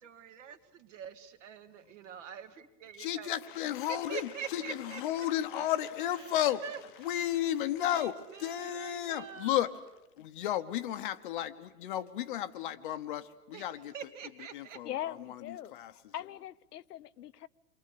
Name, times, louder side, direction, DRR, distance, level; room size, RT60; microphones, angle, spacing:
voice 1, 0.0-3.3 3.9-5.0 6.6-6.8 7.8-8.1 8.5-9.5 13.5-13.6 13.9-14.8, right 7 dB, 50° right, 9 dB, 2.4 m, -44 dB
voice 2, 3.0-9.7 10.2-13.9 14.5-15.9, left 12 dB, 35° left, 10 dB, 0.9 m, -33 dB
voice 3, 14.8-17.5, left 12 dB, 90° left, 13 dB, 1.0 m, -41 dB
28.5 x 22.5 x 8.5 m, 0.92 s
supercardioid pair, 170°, 45 cm